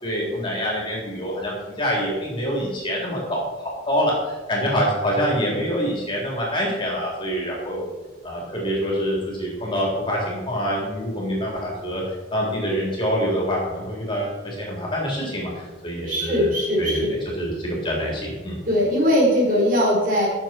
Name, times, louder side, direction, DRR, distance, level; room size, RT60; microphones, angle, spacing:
voice 1, 0.0-3.5 3.8-7.9 8.2-12.0 12.3-16.5 16.8-17.0 17.4-18.6, equal, 25° left, -3 dB, 3.7 m, -25 dB
voice 2, 16.1-17.2 18.7-20.3, equal, 45° right, -3 dB, 4.2 m, -20 dB
17.0 x 7.2 x 4.5 m, 1.2 s
head